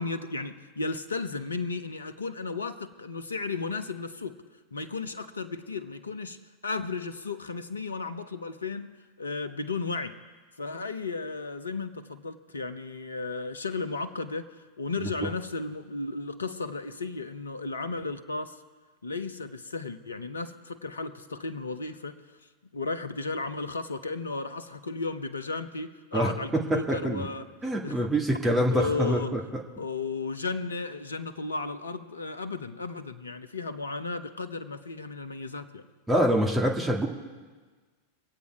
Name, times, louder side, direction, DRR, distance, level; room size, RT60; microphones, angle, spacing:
voice 1, 0.0-4.4 4.7-6.4 6.6-10.1 10.6-18.6 19.0-22.2 22.7-27.4 27.8-28.0 28.7-29.4 29.8-35.8, left 3 dB, 75° left, 11 dB, 0.8 m, -34 dB
voice 2, 26.7-27.2 27.6-29.4 36.1-37.1, right 1 dB, 10° right, -1 dB, 2.2 m, -25 dB
24.5 x 8.3 x 4.7 m, 1.4 s
figure-of-eight pair, 90°, 0 cm